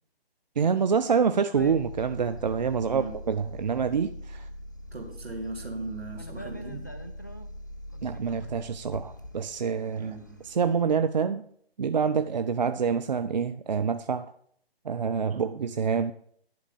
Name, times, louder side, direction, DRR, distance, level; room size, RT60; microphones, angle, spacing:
voice 1, 0.6-4.5 8.0-10.1 10.6-11.4 11.8-14.3 14.9-16.1, right 6 dB, 45° right, 0.5 m, -26 dB
sound 1, 1.5-10.8, equal, 20° left, 0.3 m, -41 dB
voice 2, 2.8-3.2 4.9-7.0 10.0-10.5 15.3-15.7, right 3 dB, 75° right, 2.4 m, -39 dB
10.5 x 5.1 x 6.9 m
figure-of-eight pair, 145°, 31 cm